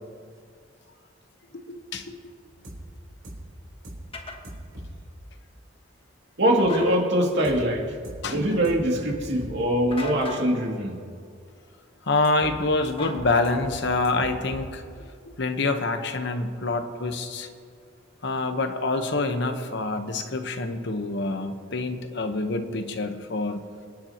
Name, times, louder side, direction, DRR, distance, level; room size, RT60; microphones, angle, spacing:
voice 1, 1.5-2.2 8.2-8.4 12.1-14.8 15.4-17.5 18.2-23.6, left 3 dB, 60° left, 7 dB, 1.0 m, -26 dB
sound 1, 2.6-2.8 3.2-3.4 3.8-4.0 4.4-4.9 7.4-7.6 8.0-8.2 8.6-8.8 9.1-9.6 12.2-12.6 12.8-12.9 13.1-13.8 14.0-14.7, equal, 80° right, 3.8 m, -40 dB
sound 2, 4.1-4.4 6.6-7.0 9.9-10.5 13.0-13.8, left 2 dB, 30° left, 1.4 m, -37 dB
voice 2, 6.4-8.0 8.3-11.0, equal, 60° right, 0 dB, 2.4 m, -23 dB
28.0 x 9.8 x 2.9 m, 2.3 s
head